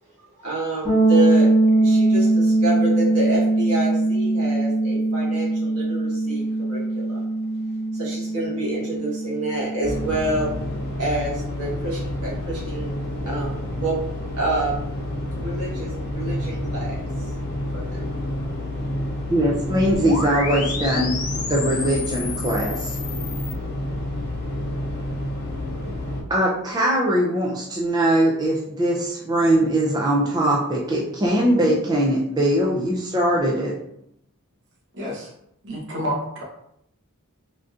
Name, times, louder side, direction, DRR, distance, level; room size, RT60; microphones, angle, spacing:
voice 1, 0.4-1.5 1.8-7.2 7.9-10.5 11.0-14.0 14.4-14.9 15.4-17.3 17.7-18.0, right 1 dB, 85° right, -4 dB, 1.3 m, -28 dB
sound 1, 0.8-10.6, right 2 dB, 35° right, 1.3 m, -21 dB
sound 2, 9.8-26.2, left 1 dB, 45° left, 0.7 m, -29 dB
voice 2, 19.3-23.0 26.3-33.7, right 1 dB, 20° right, -4 dB, 0.4 m, -21 dB
sound 3, 19.9-23.5, left 4 dB, 80° left, 0.6 m, -31 dB
voice 3, 34.9-35.3 35.6-36.4, equal, 55° right, -3 dB, 0.9 m, -29 dB
3.6 x 2.6 x 2.4 m, 0.75 s
head